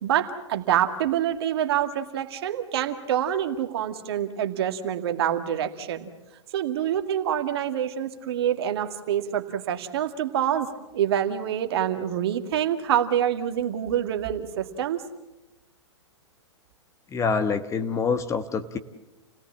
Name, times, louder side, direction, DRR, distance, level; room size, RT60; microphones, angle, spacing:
voice 1, 0.0-6.1 6.5-10.7 10.9-15.0, right 10 dB, 55° right, 7 dB, 2.0 m, -26 dB
voice 2, 17.1-18.8, left 5 dB, 20° left, 9 dB, 1.3 m, -26 dB
29.0 x 17.5 x 7.4 m, 1.0 s
figure-of-eight pair, 110°, 15 cm